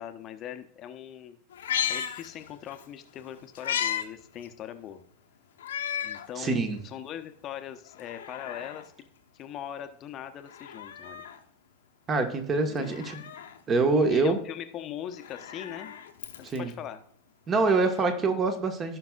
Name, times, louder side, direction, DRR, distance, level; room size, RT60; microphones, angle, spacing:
voice 1, 0.0-1.4 1.9-5.0 6.0-9.1 9.3-11.2 12.6-13.0 14.1-16.0 16.4-17.0, left 10 dB, 35° left, 8 dB, 0.9 m, -41 dB
Meow, 1.5-2.9 3.2-4.1 4.4-4.5 5.6-6.3 6.8-6.9 7.9-8.9 10.4-11.4 12.8-13.6 15.1-16.7 17.9-18.0, left 9 dB, 70° left, 1.0 m, -34 dB
voice 2, 6.4-6.8 12.1-13.2 13.7-14.4 16.4-16.7 17.5-19.0, right 3 dB, 25° right, 6 dB, 1.5 m, -25 dB
17.0 x 5.8 x 2.4 m, 0.65 s
figure-of-eight pair, 90°, 0 cm